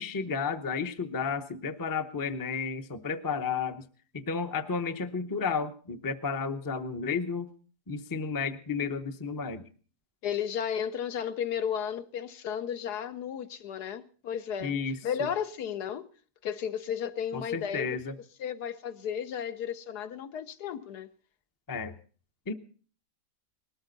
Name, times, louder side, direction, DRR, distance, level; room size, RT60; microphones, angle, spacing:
voice 1, 0.0-3.8 4.1-7.5 7.9-9.7 14.6-15.3 17.3-18.2 21.7-21.9 22.5-22.6, left 5 dB, 20° left, 0.5 m, -32 dB
voice 2, 10.2-14.7 15.0-16.1 16.4-18.0 18.4-21.1, left 8 dB, 75° left, 1.4 m, -33 dB
20.0 x 13.5 x 3.9 m
omnidirectional pair, 1.7 m